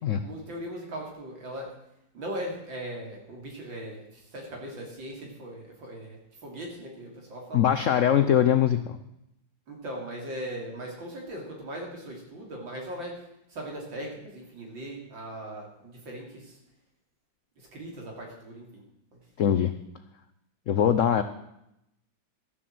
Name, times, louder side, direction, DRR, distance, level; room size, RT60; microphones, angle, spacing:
voice 1, 0.2-1.7 2.1-7.6 9.7-13.1 13.5-16.5 17.6-18.8, right 1 dB, 80° right, 0 dB, 3.8 m, -39 dB
voice 2, 7.5-9.0 19.4-19.7 20.7-21.2, left 9 dB, 80° left, 10 dB, 0.7 m, -22 dB
12.5 x 7.6 x 7.7 m, 0.83 s
omnidirectional pair, 2.1 m